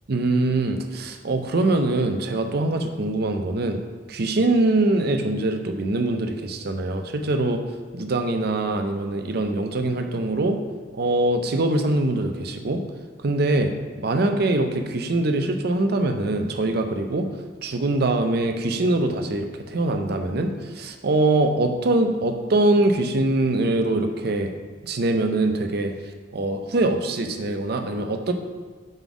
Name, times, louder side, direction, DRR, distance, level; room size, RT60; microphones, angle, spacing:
voice 1, 0.1-3.8 4.1-7.6 7.9-10.6 10.9-12.8 13.2-13.7 14.0-17.3 17.6-24.5 24.8-25.9 26.3-28.3, right 2 dB, 60° right, 6 dB, 0.6 m, -23 dB
5.3 x 4.0 x 5.9 m, 1.5 s
head